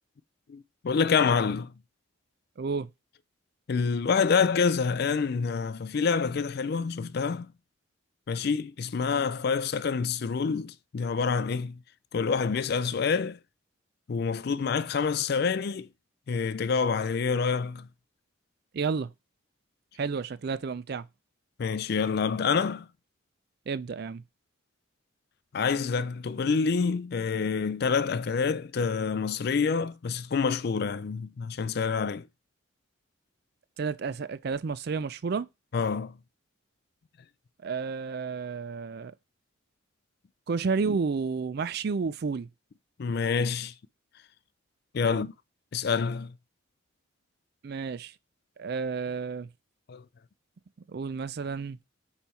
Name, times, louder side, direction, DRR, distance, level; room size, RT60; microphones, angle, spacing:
voice 1, 0.5-1.7 3.7-7.5 8.3-11.8 12.1-13.4 14.1-15.9 16.3-17.9 21.6-22.9 25.5-32.2 35.7-36.2 43.0-43.7 44.9-45.3 45.7-46.3 49.9-50.0, left 5 dB, 50° left, 0.4 m, -27 dB
voice 2, 2.6-2.9 18.7-19.1 20.0-21.1 23.7-24.2 33.8-35.5 37.6-39.1 40.5-42.5 45.1-45.2 47.6-48.1 48.6-49.5 50.9-51.8, right 5 dB, 50° right, 0.4 m, -31 dB
5.6 x 4.4 x 4.1 m
head